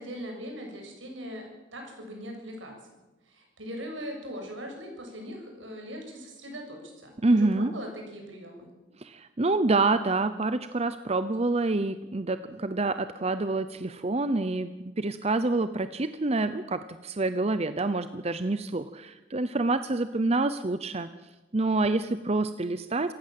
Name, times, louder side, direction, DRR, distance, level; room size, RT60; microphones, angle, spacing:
voice 1, 0.0-3.0 3.3-8.7, equal, 75° right, 2 dB, 7.3 m, -40 dB
voice 2, 7.2-7.7 9.0-21.1 21.5-23.1, right 2 dB, 35° right, 11 dB, 0.7 m, -27 dB
27.5 x 15.5 x 7.8 m, 1.1 s
head